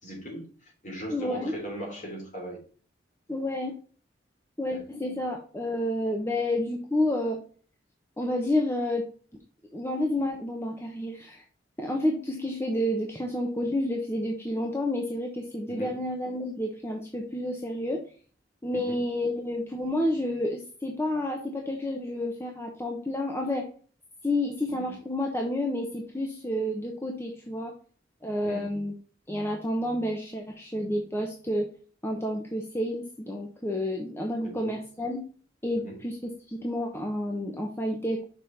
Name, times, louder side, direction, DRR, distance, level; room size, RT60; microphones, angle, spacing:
voice 1, 0.0-2.6 4.7-5.1 15.7-16.0 18.7-19.0 24.7-25.0 28.4-28.7 34.4-34.8 35.7-36.0, right 1 dB, 40° left, 0 dB, 3.4 m, -39 dB
voice 2, 1.1-1.5 3.3-3.8 4.6-7.4 8.2-9.0 9.7-11.4 11.8-18.0 18.6-23.7 24.2-27.7 28.2-28.9 29.3-31.7 32.0-35.2 35.6-38.3, left 1 dB, 15° left, 1 dB, 0.9 m, -30 dB
6.6 x 5.2 x 4.1 m, 0.42 s
head